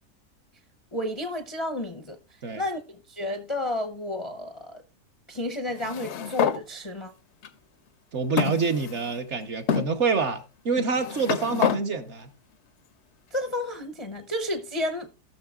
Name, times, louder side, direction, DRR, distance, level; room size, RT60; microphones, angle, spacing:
voice 1, 0.9-2.2 2.5-4.8 5.3-7.1 13.3-15.1, left 1 dB, 35° left, 0.5 m, -31 dB
sound 1, 5.8-6.6 7.4-7.5 8.4-9.2 9.7-9.9 10.8-11.8, left 8 dB, 65° left, 0.7 m, -27 dB
voice 2, 8.1-12.3, right 5 dB, 55° right, 1.1 m, -27 dB
18.0 x 6.4 x 2.4 m
omnidirectional pair, 1.6 m